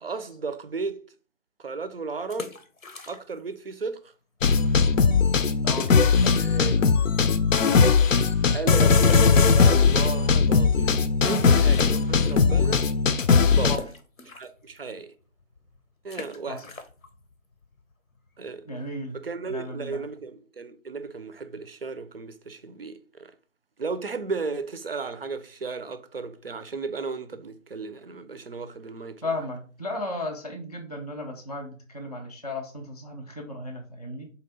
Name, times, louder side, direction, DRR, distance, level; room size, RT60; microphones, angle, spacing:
voice 1, 0.0-1.0 1.6-2.5 3.1-4.1 6.4-6.8 8.5-12.9 13.5-13.7 14.4-15.1 16.0-16.6 18.4-18.7 19.2-23.3 23.8-29.2, right 4 dB, 50° right, 0.4 m, -34 dB
sound 1, 2.2-3.5 3.8-3.9 4.5-4.6 4.9-5.0 5.7-6.6 7.1-7.2 9.0-10.4 10.9-11.0 11.7-12.9 13.1-18.6, left 4 dB, 90° left, 0.9 m, -42 dB
sound 2, 4.4-13.8, left 5 dB, 70° left, 0.6 m, -19 dB
voice 2, 5.6-6.0 13.6-13.8 16.5-16.6 18.6-20.0 29.2-34.3, left 2 dB, 30° left, 0.4 m, -35 dB
4.1 x 2.8 x 4.0 m
figure-of-eight pair, 150°, 40 cm